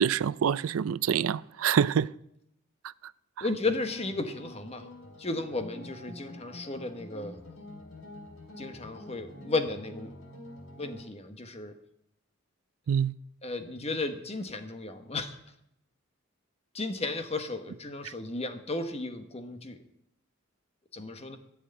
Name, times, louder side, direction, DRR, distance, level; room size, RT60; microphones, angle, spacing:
voice 1, 0.0-2.1 12.9-13.1 18.0-18.1, right 8 dB, 90° right, 0.4 m, -26 dB
voice 2, 3.4-4.8 5.2-7.4 8.6-10.1 10.8-11.7 13.4-15.4 16.7-19.8 20.9-21.4, left 2 dB, 30° left, 1.2 m, -34 dB
sound 1, 3.6-11.0, left 1 dB, 80° left, 2.7 m, -47 dB
14.0 x 6.4 x 9.1 m
head